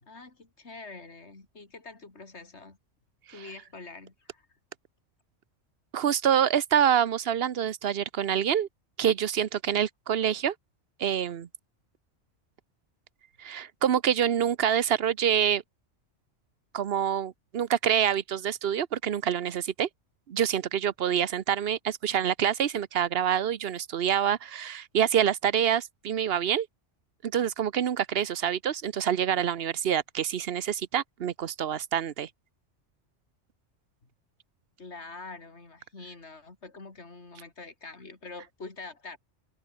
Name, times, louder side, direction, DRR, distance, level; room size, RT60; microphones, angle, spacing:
voice 1, 0.0-2.8 3.3-4.5 34.8-39.2, left 3 dB, 60° left, 3.6 m, -45 dB
voice 2, 5.9-8.7 9.0-10.5 11.0-11.5 13.4-15.6 16.7-19.9 20.3-26.7 27.2-32.3, right 9 dB, 55° right, 1.0 m, -26 dB
omnidirectional pair, 1.3 m